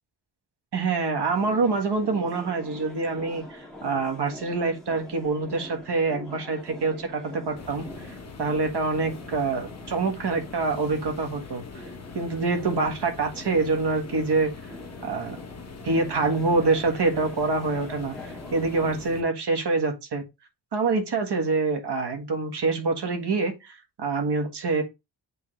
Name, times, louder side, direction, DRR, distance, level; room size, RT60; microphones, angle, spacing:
voice 1, 0.7-11.6 12.1-14.5 15.0-15.4 15.8-20.2 20.7-24.8, right 3 dB, 60° right, 1.7 m, -26 dB
sound 1, 1.3-19.0, left 1 dB, ahead, 1.7 m, -45 dB
sound 2, 7.6-19.2, left 5 dB, 35° left, 1.2 m, -43 dB
8.5 x 3.6 x 3.3 m
wide cardioid pair, 145°, 45 cm